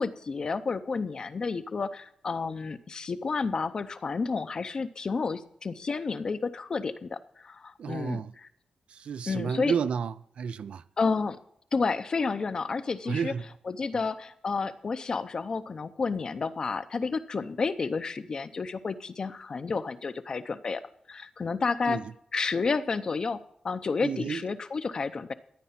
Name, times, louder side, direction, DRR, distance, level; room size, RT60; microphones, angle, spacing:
voice 1, 0.0-8.2 9.3-9.7 11.0-11.4 11.7-13.3 13.7-20.8 21.1-22.0 22.3-25.3, left 4 dB, 35° left, 0.6 m, -30 dB
voice 2, 7.8-8.3 8.9-10.8 13.1-13.5 13.9-14.0 21.9-22.1 24.0-24.4, right 6 dB, 65° right, 0.4 m, -31 dB
14.0 x 9.8 x 5.8 m
wide cardioid pair, 180°, 2 cm